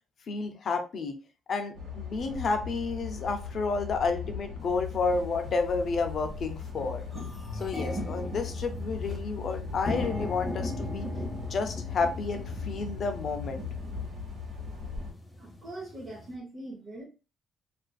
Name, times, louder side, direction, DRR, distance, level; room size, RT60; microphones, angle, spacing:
voice 1, 0.3-1.1 1.5-7.0 7.6-11.1 11.5-13.7, left 4 dB, 55° left, 6 dB, 0.5 m, -31 dB
sound 1, 1.7-15.1, left 5 dB, 70° right, 1.1 m, -39 dB
sound 2, 4.8-4.9 5.6-5.9 6.3-6.4 6.6-16.3, left 1 dB, 20° left, 0.8 m, -39 dB
voice 2, 15.4-17.0, right 1 dB, 45° right, -2 dB, 0.6 m, -42 dB
2.4 x 2.4 x 2.2 m, 0.32 s
cardioid pair, 90°, 0 cm